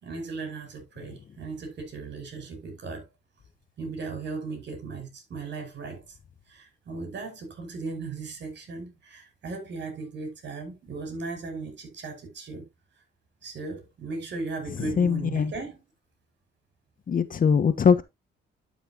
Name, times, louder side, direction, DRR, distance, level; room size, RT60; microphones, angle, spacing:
voice 1, 0.0-3.1 3.8-6.2 6.5-12.7 13.4-15.8, right 3 dB, 60° right, 5.5 m, -37 dB
voice 2, 15.0-15.5 17.1-18.0, left 6 dB, 45° left, 1.1 m, -21 dB
12.0 x 5.9 x 2.8 m
cardioid pair, 90°, 20 cm